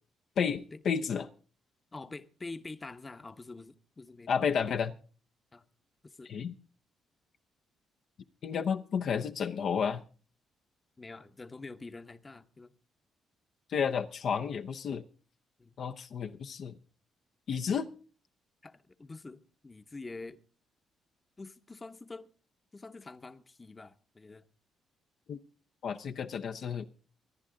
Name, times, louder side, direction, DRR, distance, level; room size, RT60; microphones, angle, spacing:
voice 1, 0.4-1.3 4.3-4.9 6.3-6.5 8.4-10.0 13.7-15.0 15.8-16.8 17.5-17.9 25.3-25.4 25.8-26.9, left 7 dB, 60° left, 0.7 m, -31 dB
voice 2, 1.9-4.3 5.5-5.6 6.0-6.3 11.0-12.7 15.6-15.7 18.6-20.4 21.4-22.3 22.7-24.4, left 3 dB, 25° left, 0.9 m, -46 dB
24.5 x 10.5 x 3.8 m
cardioid pair, 80°, 0 cm